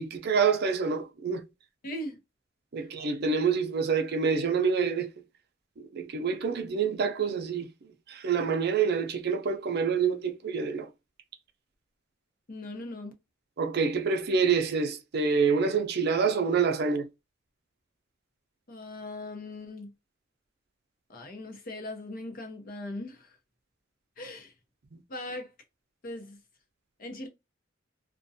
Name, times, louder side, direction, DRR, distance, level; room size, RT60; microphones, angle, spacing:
voice 1, 0.0-1.4 2.7-5.1 5.8-7.7 8.1-10.9 13.6-17.1 24.9-25.0, right 5 dB, 55° right, 0.5 m, -27 dB
voice 2, 1.8-2.2 2.8-2.9 12.5-13.1 18.7-19.9 21.1-23.4 24.2-24.5 25.1-25.5 26.0-26.4 27.0-27.3, left 1 dB, 50° left, 0.7 m, -39 dB
2.4 x 2.2 x 2.6 m
head